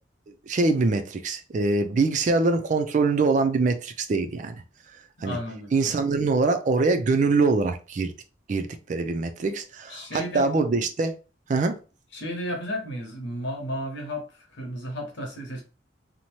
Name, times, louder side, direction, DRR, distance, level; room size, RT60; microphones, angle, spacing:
voice 1, 0.5-4.5 5.2-5.4 5.7-8.1 8.5-11.2 11.5-11.7, right 3 dB, 40° right, 0.3 m, -23 dB
voice 2, 5.2-5.7 9.9-10.5 12.1-14.3 14.5-15.6, equal, 75° left, 1.0 m, -33 dB
2.7 x 2.1 x 3.0 m
head